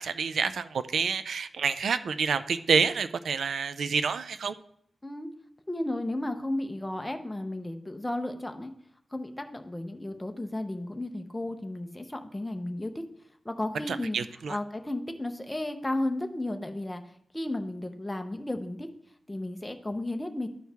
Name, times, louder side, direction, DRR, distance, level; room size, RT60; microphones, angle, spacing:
voice 1, 0.0-4.5 13.9-14.6, right 5 dB, 75° right, 12 dB, 0.4 m, -28 dB
voice 2, 5.7-8.7 9.1-13.0 13.4-14.2 14.5-18.9 19.3-20.5, left 1 dB, 10° left, 6 dB, 0.6 m, -33 dB
12.5 x 4.6 x 3.4 m, 0.69 s
wide cardioid pair, 175°, 0 cm